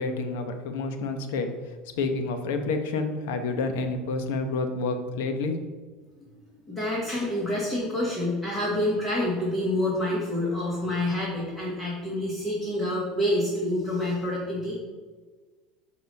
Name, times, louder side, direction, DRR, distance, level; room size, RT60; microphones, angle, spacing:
voice 1, 0.0-1.5 2.0-5.6, left 3 dB, 75° left, 7 dB, 1.0 m, -29 dB
voice 2, 6.6-14.8, left 1 dB, 15° left, -6 dB, 1.7 m, -27 dB
6.9 x 5.0 x 5.4 m, 1.4 s
cardioid pair, 170°, 0 cm